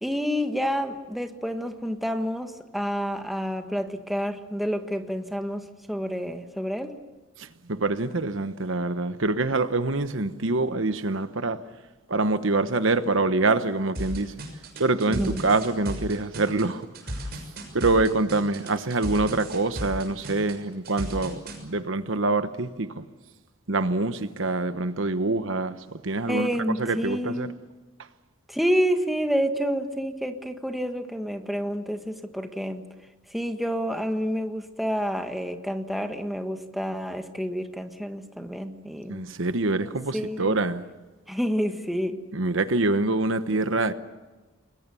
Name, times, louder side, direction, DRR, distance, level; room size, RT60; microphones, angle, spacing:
voice 1, 0.0-6.9 15.1-15.4 26.3-27.6 28.5-32.8 33.3-39.2 39.8-40.5 41.3-42.2, equal, ahead, 1.5 m, -29 dB
voice 2, 7.4-11.6 12.1-14.3 14.8-17.3 17.7-23.0 23.7-26.5 26.8-27.5 39.1-40.8 42.3-43.9, right 2 dB, 65° right, 1.1 m, -25 dB
sound 1, 13.9-21.6, equal, 50° right, 6.5 m, -35 dB
29.5 x 21.5 x 7.0 m
head